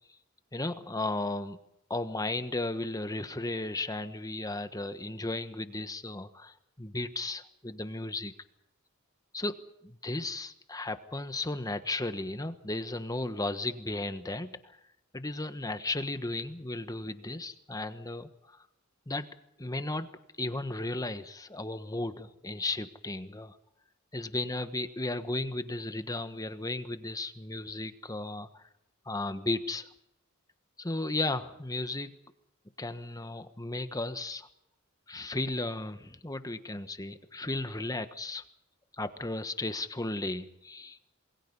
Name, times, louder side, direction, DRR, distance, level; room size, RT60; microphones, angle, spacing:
voice 1, 0.5-1.6 1.9-8.3 9.3-9.6 9.8-14.8 15.1-18.3 19.1-19.3 19.6-20.1 20.4-23.6 24.1-28.6 29.0-29.9 30.8-32.1 32.8-34.5 35.1-38.4 39.0-41.0, left 2 dB, 15° left, 10 dB, 1.4 m, -35 dB
27.5 x 21.5 x 5.5 m, 0.77 s
head